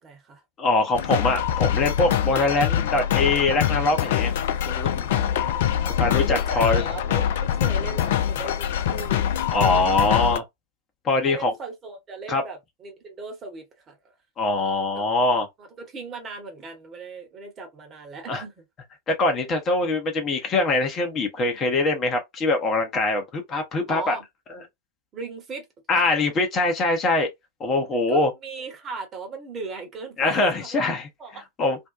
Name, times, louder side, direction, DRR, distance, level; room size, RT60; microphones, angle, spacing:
voice 1, 0.0-0.4 5.2-9.3 9.6-10.2 11.2-14.0 14.9-15.0 15.6-18.6 23.9-24.2 25.1-25.7 25.9-26.1 28.1-30.9 31.2-31.5, right 4 dB, 25° right, 1.0 m, -38 dB
voice 2, 0.6-5.2 6.0-6.8 9.5-10.4 11.0-11.5 12.3-12.4 14.4-15.5 18.3-18.4 19.1-24.2 25.9-27.3 27.6-28.3 30.2-31.1 31.6-31.8, left 2 dB, 30° left, 0.7 m, -23 dB
sound 1, 0.9-10.4, left 10 dB, 55° left, 0.3 m, -24 dB
2.6 x 2.1 x 2.4 m
figure-of-eight pair, 90°, 0 cm